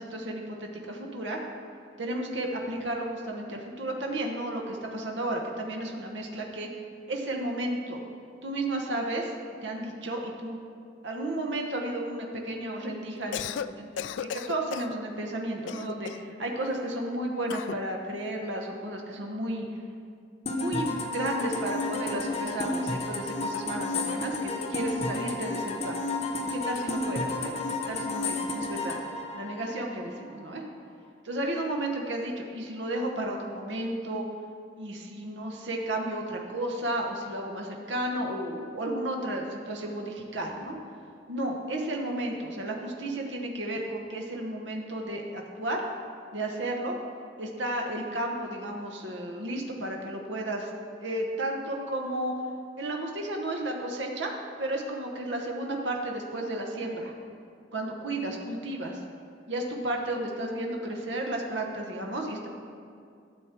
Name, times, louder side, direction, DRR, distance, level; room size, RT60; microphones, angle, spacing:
voice 1, 0.0-1.4 2.0-6.7 7.1-8.0 8.4-9.3 9.6-10.6 11.0-19.7 20.6-26.0 26.5-29.0 29.3-30.6 31.2-34.3 34.8-40.8 41.3-45.8 46.3-47.0 47.4-50.7 51.0-52.3 52.8-54.3 54.6-57.1 57.7-59.0 59.5-62.5, right 1 dB, 80° right, 1 dB, 1.1 m, -33 dB
Cough, 13.2-13.7 14.0-14.9 15.7-16.3 17.5-17.8, left 8 dB, 85° left, 0.3 m, -35 dB
sound 1, 20.5-30.2, left 2 dB, 35° left, 0.8 m, -32 dB
13.0 x 7.4 x 4.4 m, 2.4 s
head